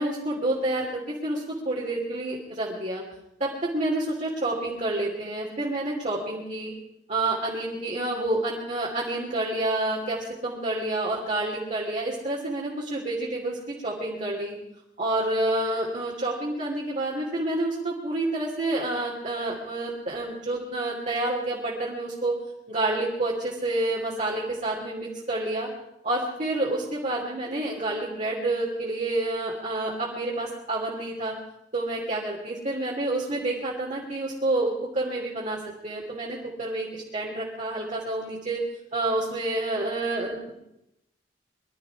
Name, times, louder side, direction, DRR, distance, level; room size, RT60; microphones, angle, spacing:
voice 1, 0.0-3.0 3.4-6.7 7.1-14.6 15.0-22.4 22.7-25.7 26.0-31.3 31.7-35.6 35.8-38.6 38.9-40.5, right 2 dB, 45° right, -5 dB, 3.0 m, -28 dB
23.5 x 12.5 x 4.7 m, 0.84 s
head